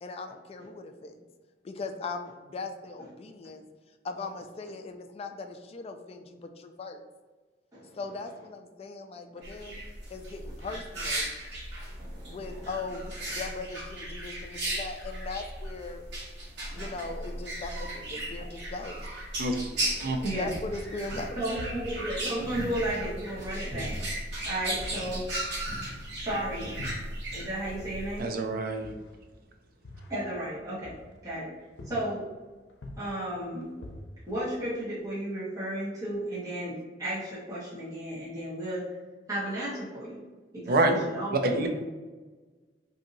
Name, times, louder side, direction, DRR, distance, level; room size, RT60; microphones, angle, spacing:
voice 1, 0.0-1.2 1.6-3.6 4.0-7.0 7.9-9.8 10.1-11.3 12.3-16.0 16.7-19.0 20.4-21.4, left 3 dB, 35° left, 6 dB, 0.3 m, -39 dB
sound 1, 9.4-28.2, right 1 dB, 85° right, 1.2 m, -36 dB
voice 2, 12.0-12.4 16.7-16.9 19.8-20.5 21.4-23.9 24.4-25.2 26.1-26.8 27.3-28.3 30.1-31.0 31.2-31.5 31.8-32.2 33.0-33.7 34.3-38.8 39.3-40.2 40.5-41.7, right 1 dB, 20° right, -10 dB, 1.2 m, -34 dB
Coin (dropping), 19.7-28.3, equal, ahead, 1.5 m, -46 dB
sound 2, 20.5-23.4 23.8-27.5 27.8-31.5 31.8-32.4 32.7-35.0, left 1 dB, 80° left, 0.6 m, -46 dB
voice 3, 28.2-28.9 40.7-40.9 41.3-41.7, right 2 dB, 55° right, 5 dB, 0.4 m, -26 dB
2.7 x 2.6 x 3.9 m, 1.3 s
head